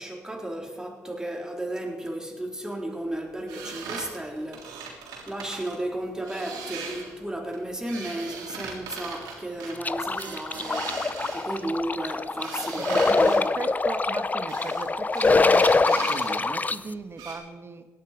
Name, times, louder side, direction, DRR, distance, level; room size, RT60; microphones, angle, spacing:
voice 1, 0.0-13.3, right 1 dB, 10° right, 4.0 m, -34 dB
sound 1, 3.5-5.8 6.2-7.2 7.5-11.8 12.4-13.4 14.5-14.9 15.1-16.5 16.8-16.9 17.2-17.4, right 5 dB, 85° right, 3.5 m, -39 dB
sound 2, 9.8-16.8, left 3 dB, 25° left, 0.7 m, -24 dB
voice 2, 12.8-17.9, right 4 dB, 40° right, 1.7 m, -37 dB
17.5 x 11.5 x 5.2 m
supercardioid pair, 60°, 6 cm